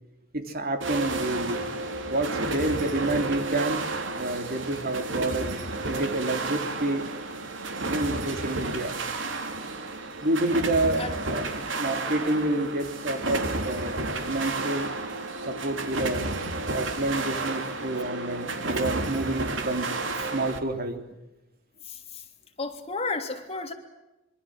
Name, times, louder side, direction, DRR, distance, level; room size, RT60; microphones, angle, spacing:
voice 1, 0.3-1.7 2.1-3.8 4.2-5.5 5.9-7.1 7.9-9.0 10.2-11.5 11.7-14.0 14.3-14.9 15.5-16.3 16.7-19.9 20.3-21.0, right 2 dB, 50° right, 6 dB, 3.4 m, -28 dB
sound 1, 0.8-20.6, right 2 dB, 65° right, 3.3 m, -31 dB
voice 2, 21.8-22.2 22.6-23.7, left 3 dB, 30° left, 5 dB, 3.2 m, -32 dB
26.0 x 24.0 x 7.9 m, 0.98 s
head